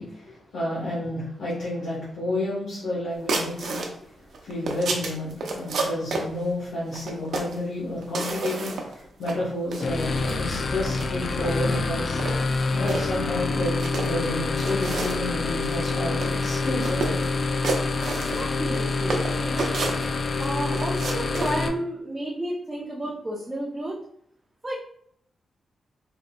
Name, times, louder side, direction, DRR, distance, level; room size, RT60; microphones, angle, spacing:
voice 1, 0.0-4.1 4.4-12.2 12.7-17.4, left 1 dB, 70° left, -9 dB, 1.2 m, -30 dB
sound 1, 3.3-3.9 4.3-6.3 6.9-7.6 8.0-8.9 9.2-9.4 9.7-10.4 10.9-11.1 11.4-11.8 12.2-13.0 13.6-14.3 14.6-15.2 15.6-15.8 16.0-16.5 16.8-17.3 17.6-18.8 19.1-20.5 20.7-21.5, right 3 dB, 70° right, 0.5 m, -30 dB
sound 2, 9.8-21.7, left 3 dB, 45° left, 0.3 m, -27 dB
voice 2, 18.4-19.5 20.4-24.0 24.6-24.7, right 1 dB, 15° right, -5 dB, 0.6 m, -31 dB
3.6 x 2.7 x 2.2 m, 0.67 s
wide cardioid pair, 130°, 0 cm